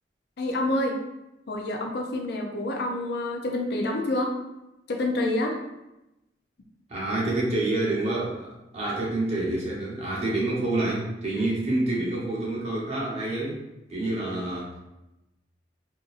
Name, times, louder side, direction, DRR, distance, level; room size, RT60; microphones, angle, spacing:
voice 1, 0.4-1.0 1.5-4.3 4.9-5.6, left 1 dB, 65° left, 2 dB, 0.5 m, -27 dB
voice 2, 6.9-13.6 13.9-14.8, right 2 dB, 35° right, -5 dB, 1.0 m, -28 dB
3.9 x 2.6 x 2.5 m, 0.94 s
head